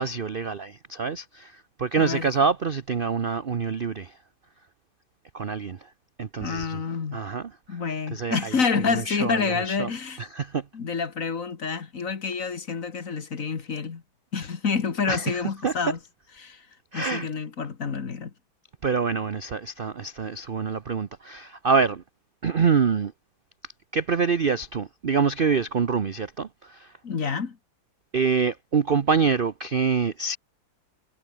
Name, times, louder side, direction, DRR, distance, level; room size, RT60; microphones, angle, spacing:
voice 1, 0.0-4.2 5.3-5.9 6.2-6.8 7.1-7.8 8.1-9.9 10.2-10.7 15.1-15.7 16.9-17.3 18.8-22.0 22.4-23.1 23.9-26.9 28.1-30.4, right 5 dB, 50° right, 0.6 m, -26 dB
voice 2, 2.0-2.3 6.4-7.2 7.7-10.2 10.7-14.0 14.3-16.0 16.4-16.7 16.9-18.3 27.0-27.6, left 5 dB, 45° left, 2.0 m, -28 dB
omnidirectional pair, 2.1 m